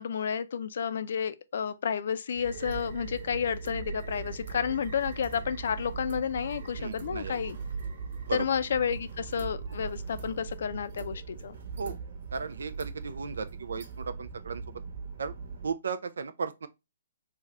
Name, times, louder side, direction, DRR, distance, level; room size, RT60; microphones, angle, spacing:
voice 1, 0.0-7.6 8.3-11.6, left 7 dB, 65° left, 0.4 m, -31 dB
sound 1, 2.3-15.7, right 5 dB, 60° right, 1.0 m, -40 dB
voice 2, 6.8-7.4 8.3-8.5 11.8-12.0 12.3-14.6 15.2-15.4 15.6-16.7, right 5 dB, 80° right, 0.3 m, -35 dB
3.3 x 2.1 x 3.5 m
hypercardioid pair, 145°, 0 cm